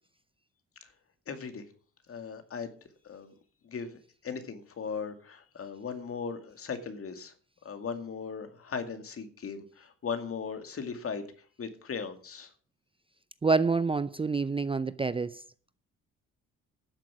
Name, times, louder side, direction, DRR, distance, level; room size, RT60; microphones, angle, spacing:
voice 1, 1.3-1.6 2.1-2.7 3.0-3.3 3.6-3.9 4.2-7.3 7.6-11.2 11.6-12.5, left 6 dB, 50° left, 2.2 m, -38 dB
voice 2, 13.4-15.4, right 4 dB, 20° right, 0.5 m, -27 dB
12.5 x 7.7 x 6.2 m
cardioid pair, 90°, 30 cm